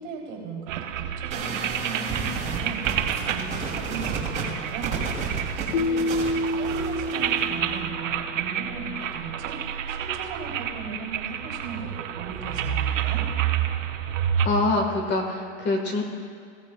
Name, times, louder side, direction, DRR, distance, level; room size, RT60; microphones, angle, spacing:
voice 1, 0.0-13.3, right 4 dB, 45° right, -2 dB, 3.2 m, -37 dB
sound 1, 0.7-14.5, right 9 dB, 85° right, 0.9 m, -29 dB
sound 2, 1.3-7.4, right 4 dB, 20° right, 3.0 m, -32 dB
Keyboard (musical), 5.7-8.6, left 1 dB, 55° left, 0.9 m, -28 dB
voice 2, 14.4-16.0, left 2 dB, 25° left, 2 dB, 1.6 m, -25 dB
16.5 x 15.0 x 2.4 m, 2.3 s
hypercardioid pair, 130°, 38 cm